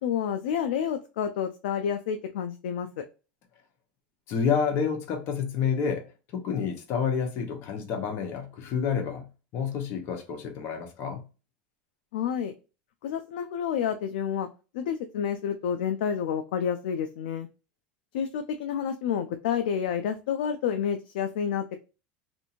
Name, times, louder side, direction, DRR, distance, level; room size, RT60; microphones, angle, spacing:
voice 1, 0.0-3.0 12.1-12.5 13.0-14.5 14.7-17.5 18.1-21.8, left 8 dB, 90° left, 0.3 m, -29 dB
voice 2, 4.3-6.1 6.3-11.2, left 6 dB, 50° left, 0.9 m, -29 dB
2.6 x 2.5 x 2.8 m
supercardioid pair, 130°, 5 cm